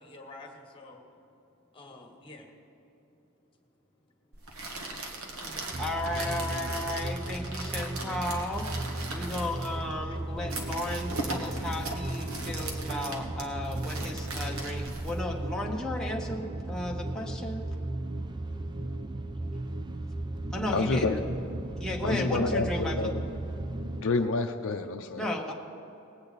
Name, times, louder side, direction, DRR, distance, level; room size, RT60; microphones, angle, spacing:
voice 1, 0.0-3.1 3.4-5.8 10.0-10.2, left 2 dB, 25° left, 2 dB, 1.6 m, -53 dB
sound 1, 4.3-15.7, right 2 dB, 70° right, 1.5 m, -39 dB
voice 2, 5.4-17.7 20.5-21.2 21.8-23.1 25.2-25.5, left 1 dB, 5° left, -2 dB, 1.0 m, -34 dB
sound 2, 5.7-24.0, right 1 dB, 20° right, 0.4 m, -36 dB
voice 3, 20.7-21.2 22.0-23.1 24.0-25.2, left 3 dB, 65° left, 5 dB, 0.6 m, -28 dB
19.5 x 8.6 x 4.1 m, 3.0 s
head